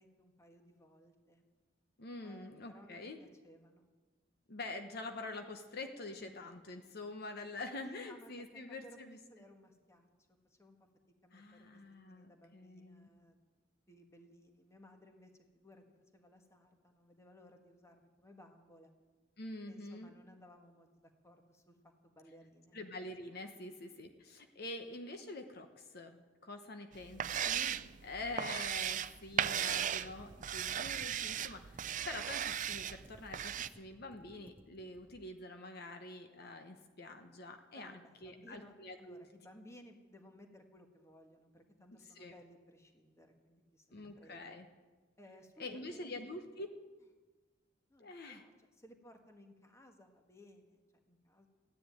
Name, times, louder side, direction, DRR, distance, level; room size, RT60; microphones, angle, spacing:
voice 1, 0.0-1.5 2.2-3.9 6.2-6.4 7.8-9.0 9.3-10.9 11.2-11.8 12.1-13.4 13.9-15.8 16.1-18.9 19.7-22.8 23.6-23.9 27.1-27.4 37.7-44.6 45.2-46.1 47.9-51.5, left 1 dB, 15° left, 4 dB, 1.5 m, -60 dB
voice 2, 2.0-3.2 4.5-9.2 11.3-13.1 19.4-20.1 22.7-27.7 28.0-39.3 42.2-42.4 43.9-44.6 45.6-46.7 48.0-48.4, left 2 dB, 55° left, 6 dB, 1.0 m, -46 dB
sound 1, 26.9-33.7, right 9 dB, 40° right, 0.5 m, -37 dB
Computer keyboard, 29.6-35.3, right 1 dB, 10° right, 0.7 m, -61 dB
14.5 x 10.0 x 9.1 m, 1.3 s
head